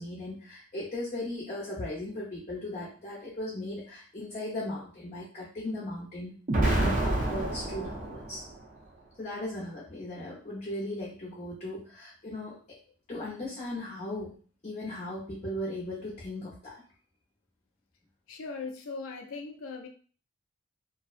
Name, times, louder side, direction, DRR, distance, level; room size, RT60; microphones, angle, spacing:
voice 1, 0.0-6.4 6.7-8.4 9.2-12.8 13.1-16.8, left 1 dB, 35° left, -5 dB, 0.6 m, -37 dB
Explosion, 6.5-8.6, right 1 dB, 40° right, 0.6 m, -28 dB
voice 2, 18.3-19.9, left 4 dB, 75° left, 2 dB, 0.4 m, -39 dB
2.5 x 2.0 x 2.4 m, 0.41 s
head